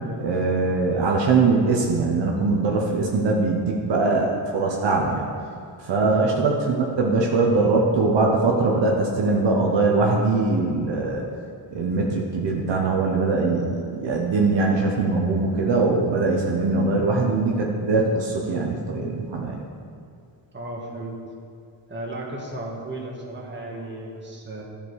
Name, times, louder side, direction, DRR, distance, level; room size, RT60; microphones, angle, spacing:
voice 1, 0.2-5.2 5.8-11.2 11.7-19.6, right 3 dB, 60° right, -1 dB, 1.1 m, -22 dB
voice 2, 16.8-17.2 20.5-21.2 21.9-24.6, right 1 dB, 20° right, -2 dB, 1.8 m, -34 dB
12.5 x 5.2 x 4.8 m, 2.4 s
cardioid pair, 120°, 49 cm